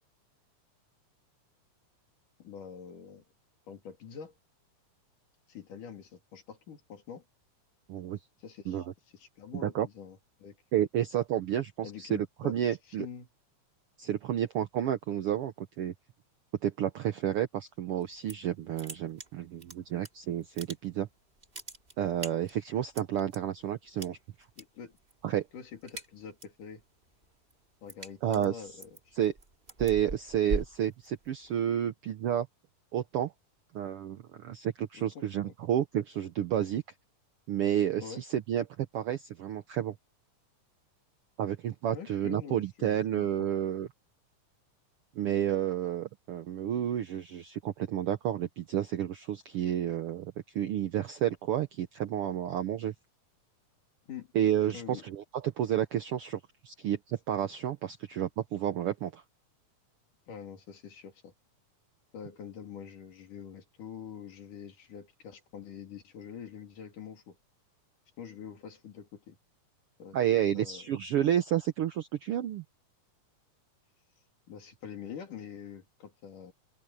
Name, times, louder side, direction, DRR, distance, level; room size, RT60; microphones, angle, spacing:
voice 1, 2.4-3.2 3.7-4.3 5.5-7.2 8.4-8.9 9.1-10.6 11.8-12.6 12.9-13.3 24.6-25.0 25.5-26.8 27.8-29.1 34.9-35.6 38.0-38.2 41.9-43.5 54.1-54.3 54.7-55.0 60.3-61.3 62.1-67.4 68.2-69.4 70.0-70.2 70.5-71.0 74.5-76.5, left 7 dB, 80° left, 4.5 m, -45 dB
voice 2, 7.9-8.2 8.7-8.8 9.5-9.9 10.7-13.1 14.0-15.9 16.6-21.1 22.0-24.2 25.2-25.4 28.2-28.6 29.2-29.3 29.8-32.5 32.9-33.3 33.7-36.8 37.5-39.9 41.4-43.9 45.1-52.9 54.3-59.2 70.1-72.6, right 10 dB, 75° right, 1.3 m, -31 dB
sound 1, 18.0-18.5 18.8-20.1 20.4-21.1 21.4-23.4 24.0-24.6 24.9-25.3 25.6-26.6 27.0-31.5, right 2 dB, 20° right, 2.5 m, -40 dB
open air
omnidirectional pair, 3.6 m